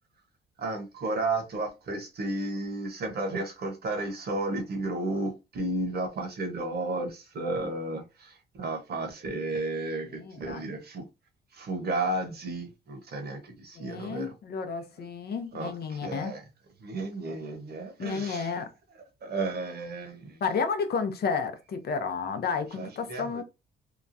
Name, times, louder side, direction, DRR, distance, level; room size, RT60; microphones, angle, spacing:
voice 1, 0.6-11.1 11.5-14.3 15.5-16.4 16.8-18.5 19.2-20.4 22.7-23.4, right 2 dB, 55° right, 1.0 m, -33 dB
voice 2, 10.1-10.7 13.8-16.3 18.0-18.7 20.4-23.4, left 5 dB, 55° left, 0.6 m, -31 dB
2.9 x 2.2 x 2.6 m
cardioid pair, 90°, 20 cm